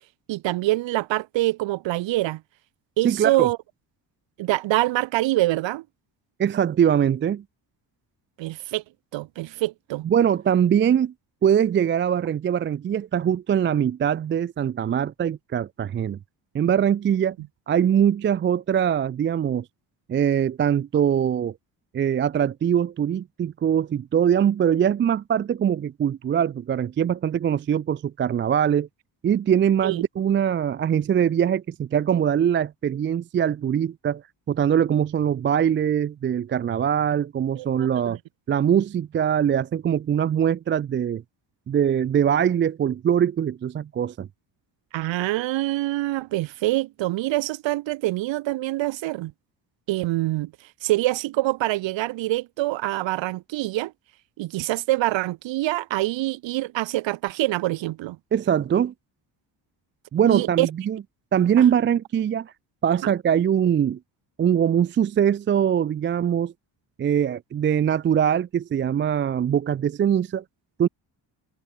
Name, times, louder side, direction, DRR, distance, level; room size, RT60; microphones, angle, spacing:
voice 1, 0.3-2.4 3.0-3.6 4.4-5.8 8.4-8.8 9.1-10.1 29.8-30.0 37.6-38.2 44.9-49.3 49.9-50.5 50.8-53.9 54.4-58.2 60.3-60.7 63.0-63.1, right 17 dB, 85° right, 1.0 m, -25 dB
voice 2, 3.0-3.5 6.4-7.4 10.0-11.1 11.4-16.2 16.5-17.4 17.7-19.6 20.1-21.5 21.9-28.9 29.2-34.2 34.5-38.2 38.5-41.2 41.7-44.3 58.3-58.9 60.1-61.0 61.3-62.5 62.8-64.0 64.4-66.5 67.0-70.4 70.8-70.9, right 9 dB, 30° right, 0.4 m, -22 dB
cardioid pair, 165°, 44 cm